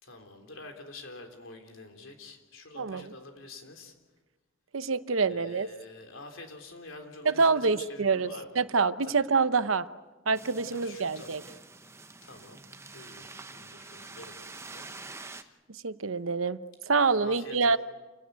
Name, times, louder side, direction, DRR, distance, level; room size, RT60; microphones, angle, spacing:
voice 1, 0.0-3.9 5.3-8.6 10.7-11.3 12.2-12.6 12.9-14.9 15.2-15.6 17.2-17.8, left 2 dB, 75° left, 5 dB, 3.6 m, -47 dB
voice 2, 2.7-3.1 4.7-5.7 7.2-8.3 8.6-9.8 10.3-11.4 15.8-16.6 16.9-17.8, right 4 dB, 85° right, 13 dB, 0.9 m, -26 dB
sound 1, 10.3-15.4, right 3 dB, 15° right, 0.9 m, -46 dB
28.0 x 17.0 x 9.4 m, 1.3 s
head